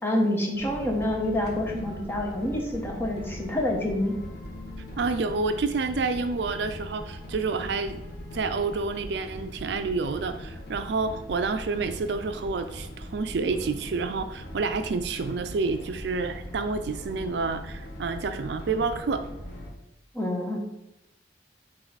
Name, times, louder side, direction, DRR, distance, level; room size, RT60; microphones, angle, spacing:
voice 1, 0.0-4.1 20.1-20.6, left 1 dB, 10° left, 0 dB, 1.1 m, -27 dB
sound 1, 0.5-19.7, equal, 60° left, 1.4 m, -40 dB
voice 2, 5.0-8.0 8.3-19.2, right 4 dB, 65° right, 9 dB, 0.4 m, -29 dB
9.1 x 3.1 x 4.0 m, 0.87 s
head